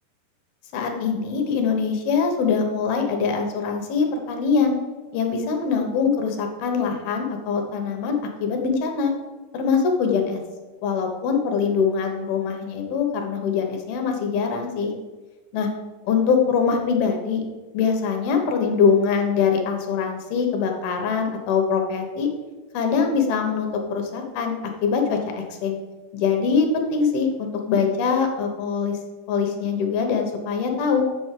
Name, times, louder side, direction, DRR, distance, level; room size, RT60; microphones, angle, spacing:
voice 1, 0.7-4.8 5.1-9.1 9.5-10.4 10.8-14.9 15.5-15.7 16.0-17.4 17.7-22.3 22.7-25.8 26.1-29.0 29.3-31.0, left 5 dB, 70° left, 3 dB, 3.1 m, -23 dB
8.3 x 6.1 x 7.6 m, 1.2 s
omnidirectional pair, 4.7 m